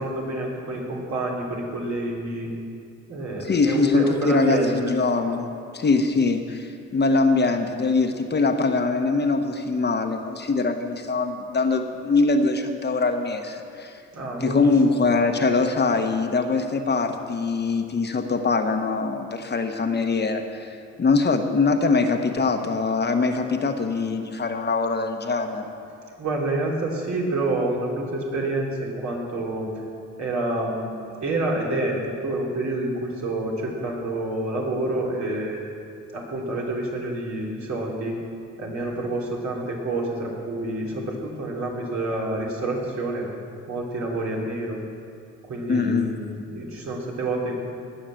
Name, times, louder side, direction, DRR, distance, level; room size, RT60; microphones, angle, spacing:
voice 1, 0.0-2.5 3.1-4.9 14.1-15.0 26.2-29.7 30.2-32.0 32.2-35.7 36.1-38.2 38.6-43.3 43.7-44.8 45.5-47.7, right 2 dB, 65° right, -3 dB, 3.3 m, -28 dB
voice 2, 3.4-14.0 14.4-25.7 45.7-46.1, left 4 dB, 35° left, 5 dB, 1.1 m, -23 dB
19.0 x 6.5 x 7.7 m, 2.5 s
cardioid pair, 90°, 30 cm